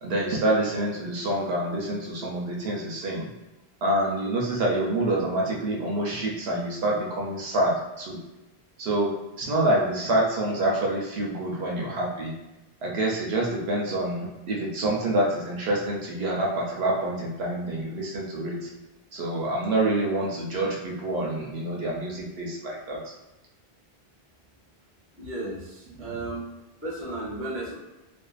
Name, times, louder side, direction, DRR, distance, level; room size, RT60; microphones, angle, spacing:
voice 1, 0.0-3.3 3.8-8.2 8.8-12.4 12.8-18.7 19.1-23.1 26.2-26.3, right 1 dB, 75° right, -2 dB, 0.8 m, -27 dB
voice 2, 25.2-26.5 26.8-27.7, right 2 dB, 15° right, -7 dB, 0.7 m, -34 dB
2.5 x 2.4 x 2.3 m, 0.99 s
omnidirectional pair, 1.1 m